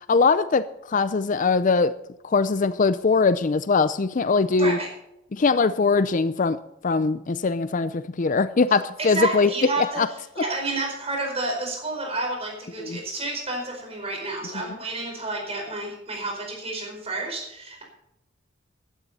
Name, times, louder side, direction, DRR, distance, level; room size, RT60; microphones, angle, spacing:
voice 1, 0.1-1.9 2.2-4.8 5.3-9.5 9.8-10.1 12.8-13.0 14.5-14.7, left 4 dB, 40° left, 14 dB, 0.5 m, -21 dB
voice 2, 4.5-4.9 9.0-10.0 10.4-17.8, right 2 dB, 30° right, 1 dB, 4.8 m, -30 dB
15.0 x 12.0 x 4.2 m, 0.84 s
head